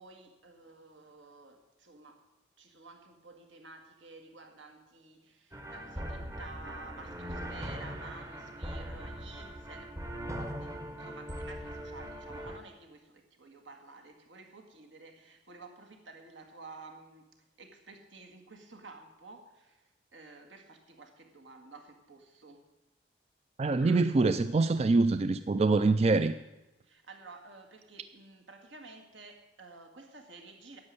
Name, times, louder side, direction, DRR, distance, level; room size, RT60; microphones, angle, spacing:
voice 1, 0.0-2.3 2.6-17.3 17.6-22.6 23.8-24.0 26.8-30.8, right 3 dB, 75° right, 4 dB, 2.0 m, -52 dB
sound 1, 5.5-12.6, equal, 15° right, 0.8 m, -40 dB
voice 2, 23.6-26.3, right 3 dB, 35° right, 11 dB, 0.3 m, -25 dB
10.5 x 7.5 x 9.6 m, 1.0 s
head